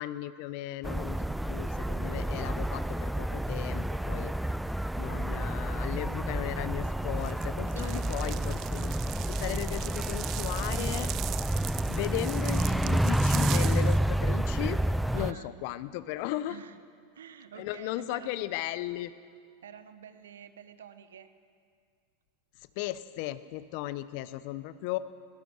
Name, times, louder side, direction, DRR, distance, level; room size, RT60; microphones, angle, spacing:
voice 1, 0.0-4.3 5.0-8.9 9.2-11.1 11.9-14.8 15.1-16.6 17.5-19.1 22.8-25.0, left 14 dB, 60° left, 15 dB, 0.9 m, -36 dB
sound 1, 0.8-15.3, right 1 dB, 5° right, 0.5 m, -29 dB
sound 2, 7.2-14.0, right 14 dB, 45° right, 0.7 m, -40 dB
voice 2, 7.7-8.3 15.1-15.6 16.5-16.8 17.1-18.3 19.6-21.3, right 8 dB, 80° right, 11 dB, 1.3 m, -49 dB
23.0 x 18.0 x 6.4 m, 2.1 s
hypercardioid pair, 95°, 0 cm